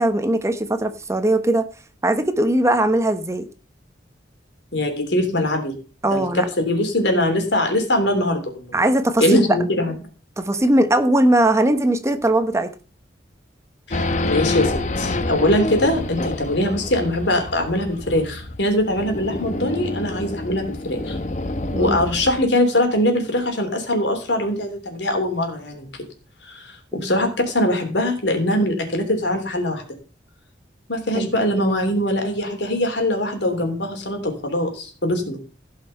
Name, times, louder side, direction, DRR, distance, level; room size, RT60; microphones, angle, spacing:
voice 1, 0.0-1.7 2.0-3.5 6.0-6.5 8.7-9.6 10.4-12.7 21.7-22.0 26.9-27.1 31.1-31.3, right 1 dB, 15° right, 10 dB, 0.9 m, -19 dB
voice 2, 4.7-5.7 6.1-8.6 9.2-9.9 13.9-21.2 21.8-25.9 26.4-29.8 30.9-35.4, left 1 dB, 80° left, 5 dB, 3.2 m, -22 dB
Race car auto racing / Idling / Accelerating revving vroom, 13.9-22.5, left 2 dB, 40° left, 1.0 m, -27 dB
16.0 x 5.7 x 5.4 m, 0.37 s
head